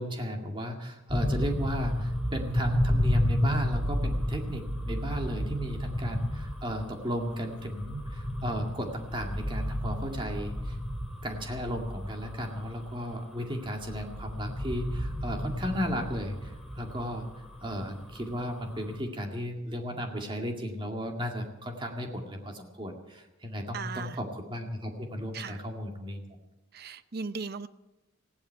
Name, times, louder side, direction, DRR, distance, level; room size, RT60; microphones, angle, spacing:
voice 1, 0.0-10.8 11.2-17.3 17.6-26.2, equal, 25° right, 2 dB, 2.1 m, -35 dB
sound 1, 1.1-19.0, equal, ahead, 2.5 m, -32 dB
voice 2, 23.7-24.2 25.3-25.6 26.7-27.7, right 5 dB, 50° right, 13 dB, 0.7 m, -37 dB
19.5 x 15.5 x 4.7 m, 0.96 s
head